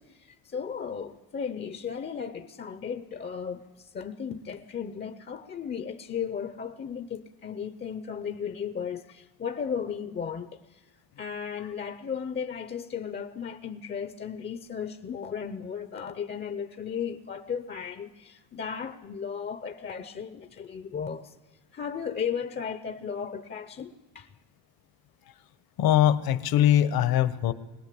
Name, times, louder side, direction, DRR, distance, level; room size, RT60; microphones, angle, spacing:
voice 1, 0.0-10.8 11.2-21.3 21.7-24.3, left 7 dB, 25° left, 0.6 m, -35 dB
voice 2, 25.8-27.5, left 11 dB, 60° left, 1.0 m, -22 dB
22.0 x 18.5 x 8.3 m
cardioid pair, 170°, 41 cm